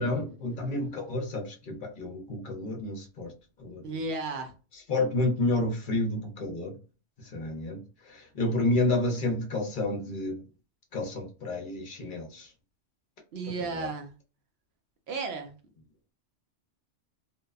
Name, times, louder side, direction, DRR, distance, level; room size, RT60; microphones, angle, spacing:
voice 1, 0.0-3.3 3.6-3.9 4.9-6.7 7.2-7.8 8.1-10.4 10.9-12.5 13.8-13.9, left 2 dB, 50° left, 0.7 m, -30 dB
voice 2, 3.8-4.5 13.3-14.1 15.1-15.5, right 3 dB, 65° right, 0.8 m, -33 dB
2.8 x 2.2 x 2.3 m
omnidirectional pair, 1.3 m